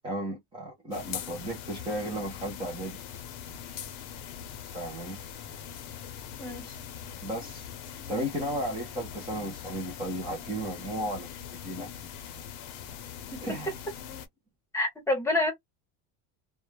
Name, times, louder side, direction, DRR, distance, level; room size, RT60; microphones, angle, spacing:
voice 1, 0.0-3.0 4.7-5.2 6.6-6.8 7.2-7.7 8.1-11.9 13.4-13.7, right 1 dB, 10° right, 0.3 m, -34 dB
sound 1, 0.9-14.3, left 9 dB, 55° left, 0.6 m, -42 dB
voice 2, 14.7-15.5, left 2 dB, 5° left, 0.7 m, -27 dB
2.2 x 2.1 x 3.0 m
cardioid pair, 170°, 48 cm